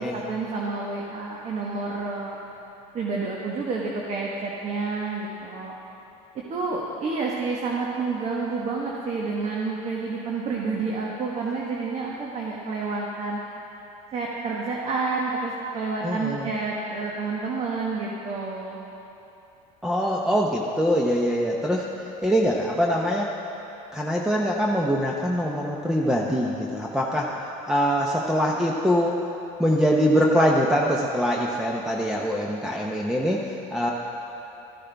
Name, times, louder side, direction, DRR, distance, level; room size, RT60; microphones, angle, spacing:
voice 1, 0.0-2.4 2.9-5.7 6.5-13.4 14.1-18.8, right 4 dB, 40° right, -3 dB, 1.2 m, -29 dB
voice 2, 16.0-16.5 19.8-21.8 22.2-23.3 23.9-29.2 29.6-33.9, equal, 5° right, -2 dB, 0.8 m, -23 dB
13.0 x 9.8 x 3.4 m, 3.0 s
supercardioid pair, 100°, 17 cm